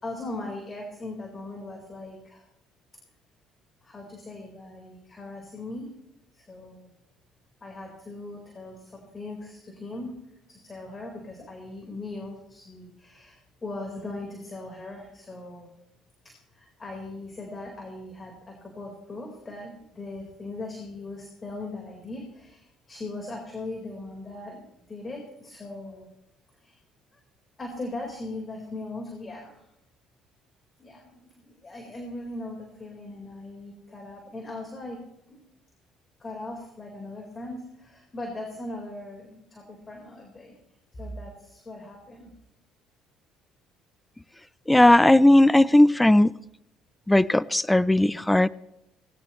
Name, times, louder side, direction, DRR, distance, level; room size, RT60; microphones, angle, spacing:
voice 1, 0.0-2.4 3.8-5.9 6.3-6.9 7.6-10.2 10.5-15.7 16.5-26.1 26.6-26.8 27.6-29.6 30.8-35.0 35.3-35.4 36.2-40.5 40.9-42.3, left 2 dB, 30° left, 1 dB, 4.2 m, -39 dB
voice 2, 44.7-46.3 47.1-48.5, left 1 dB, 10° left, 19 dB, 0.5 m, -17 dB
20.5 x 17.0 x 3.1 m, 0.85 s
supercardioid pair, 80°, 0 cm